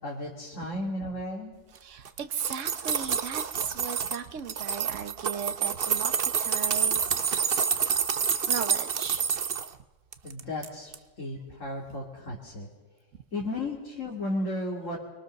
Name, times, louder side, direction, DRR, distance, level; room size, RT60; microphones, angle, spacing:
voice 1, 0.0-1.5 10.2-12.7 13.3-15.0, left 1 dB, 85° left, -3 dB, 3.1 m, -34 dB
voice 2, 1.8-7.7 8.5-9.3 9.5-9.6, right 7 dB, 75° right, 7 dB, 1.3 m, -37 dB
sound 1, 2.1-4.2 4.5-9.7 10.1-10.7 10.9-11.0, right 7 dB, 50° right, 1.0 m, -28 dB
26.0 x 24.0 x 6.6 m, 1.2 s
omnidirectional pair, 1.3 m